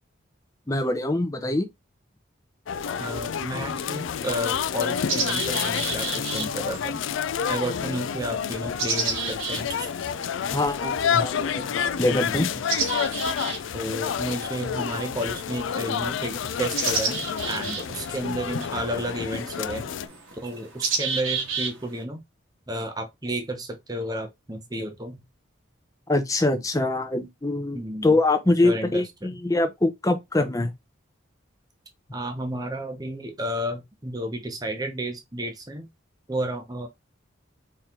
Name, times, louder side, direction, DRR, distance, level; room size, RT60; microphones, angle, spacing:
voice 1, 0.7-1.7 10.5-11.7 12.0-12.5 26.1-30.7, left 2 dB, 15° left, 0.6 m, -24 dB
sound 1, 2.7-20.1, left 7 dB, 70° left, 0.4 m, -29 dB
sound 2, 2.9-3.0 3.8-3.9 4.3-22.0, right 4 dB, 80° right, 1.5 m, -33 dB
voice 2, 3.0-7.0 7.5-9.9 12.1-12.6 13.7-19.9 20.4-22.2 22.7-25.2 27.7-28.2 28.6-29.0 29.3-29.4 32.1-35.9 36.3-36.9, right 1 dB, 20° right, 0.8 m, -32 dB
4.4 x 3.2 x 3.7 m
head